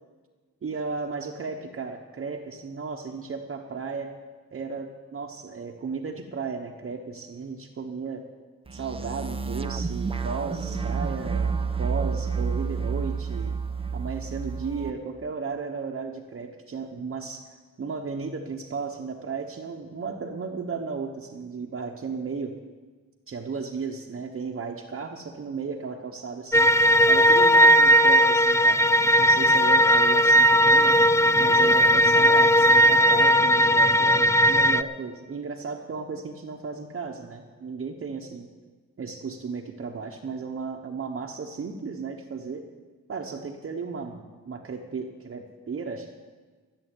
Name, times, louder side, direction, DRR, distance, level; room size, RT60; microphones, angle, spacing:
voice 1, 0.6-4.1 4.5-8.2 8.7-13.5 13.9-17.4 17.8-22.6 23.3-26.7 27.1-28.8 29.2-31.0 31.4-38.5 39.0-42.6 43.1-46.1, right 5 dB, 45° right, 0 dB, 1.0 m, -34 dB
sound 1, 8.7-14.9, right 5 dB, 20° right, 0.7 m, -29 dB
sound 2, 26.5-34.8, equal, 10° left, 0.4 m, -18 dB
14.0 x 7.7 x 9.1 m, 1.4 s
wide cardioid pair, 125°, 30 cm